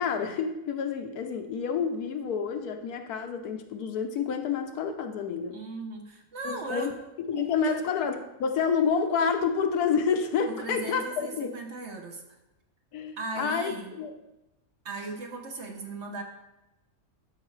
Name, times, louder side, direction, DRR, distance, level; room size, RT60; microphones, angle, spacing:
voice 1, 0.0-5.6 6.4-6.9 7.2-11.5 12.9-14.1, left 6 dB, 80° left, 6 dB, 1.2 m, -29 dB
voice 2, 5.5-6.9 7.6-7.8 10.5-12.2 13.2-13.9 14.8-16.2, right 3 dB, 55° right, 3 dB, 1.0 m, -37 dB
12.5 x 5.2 x 3.1 m, 0.95 s
omnidirectional pair, 1.6 m